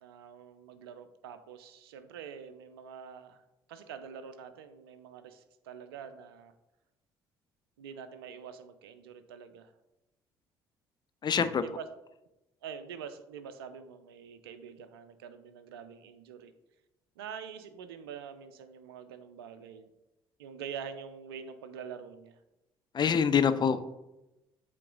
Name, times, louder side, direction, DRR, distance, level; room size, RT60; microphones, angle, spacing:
voice 1, 0.0-3.4 3.7-6.5 7.8-9.7 11.6-11.9 12.6-16.5 17.2-19.9 20.4-22.4, right 7 dB, 75° right, 10 dB, 0.5 m, -45 dB
voice 2, 11.2-11.6 22.9-23.8, left 7 dB, 35° left, 11 dB, 0.6 m, -25 dB
7.5 x 3.8 x 3.8 m, 0.93 s
figure-of-eight pair, 50°, 13 cm